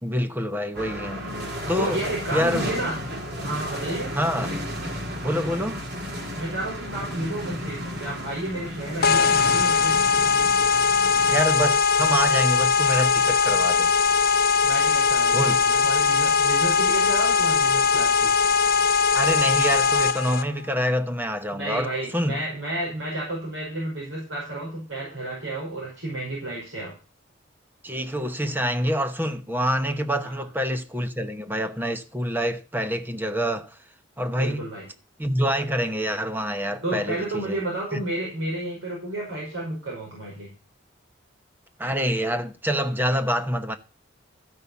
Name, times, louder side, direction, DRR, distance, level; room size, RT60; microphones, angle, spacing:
voice 1, 0.0-1.3 1.7-2.0 2.3-2.7 4.1-4.5 5.2-5.8 11.3-13.9 15.3-15.6 19.1-22.4 27.8-33.8 34.2-34.7 35.2-37.6 37.9-38.0 41.8-43.8, equal, 10° right, 0.9 m, -26 dB
sound 1, 0.7-11.4, equal, 50° right, 2.1 m, -33 dB
voice 2, 1.8-3.0 3.3-4.1 6.4-10.0 14.6-18.3 21.5-26.9 30.2-30.3 34.3-34.8 36.8-40.5, right 1 dB, 80° right, 5.5 m, -31 dB
sound 2, 9.0-20.4, left 5 dB, 45° left, 0.7 m, -20 dB
14.0 x 5.8 x 6.9 m
head